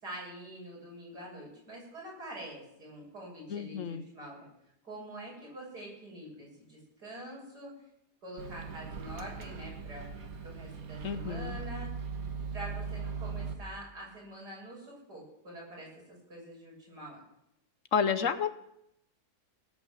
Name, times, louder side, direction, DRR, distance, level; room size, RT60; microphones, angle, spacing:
voice 1, 0.0-4.5 4.8-7.7 8.2-10.1 10.4-11.9 12.5-15.9 16.3-17.2, right 1 dB, 85° right, -4 dB, 7.4 m, -45 dB
voice 2, 3.5-4.0 11.0-11.6 17.9-18.5, left 6 dB, 60° left, 12 dB, 1.1 m, -30 dB
Microwave oven, 8.4-13.6, right 4 dB, 60° right, 1.8 m, -39 dB
18.0 x 8.3 x 7.8 m, 0.81 s
omnidirectional pair, 1.7 m